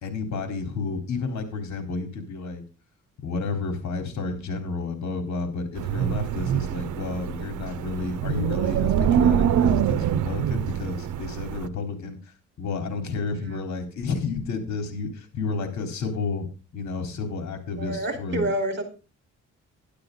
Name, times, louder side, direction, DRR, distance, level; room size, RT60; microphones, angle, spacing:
voice 1, 0.0-2.6 3.2-12.2 12.6-16.5 16.7-18.5, left 4 dB, 65° left, 6 dB, 4.0 m, -31 dB
Wind, 5.8-11.7, right 9 dB, 75° right, 1.0 m, -24 dB
voice 2, 17.8-18.8, right 1 dB, 35° right, 7 dB, 4.5 m, -28 dB
12.0 x 12.0 x 3.9 m, 0.33 s
cardioid pair, 90°, 30 cm